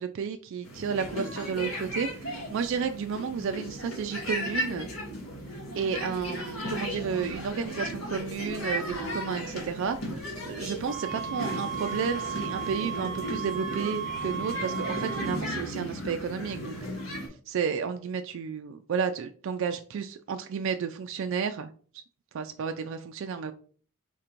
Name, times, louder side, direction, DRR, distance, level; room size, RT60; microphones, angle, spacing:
voice 1, 0.0-4.9 5.8-16.8 17.5-21.7 22.3-23.5, right 6 dB, 60° right, 0.3 m, -32 dB
sound 1, 0.6-17.3, equal, 75° left, 1.5 m, -36 dB
sound 2, 10.9-15.4, right 8 dB, ahead, 1.0 m, -35 dB
4.4 x 2.5 x 4.4 m
head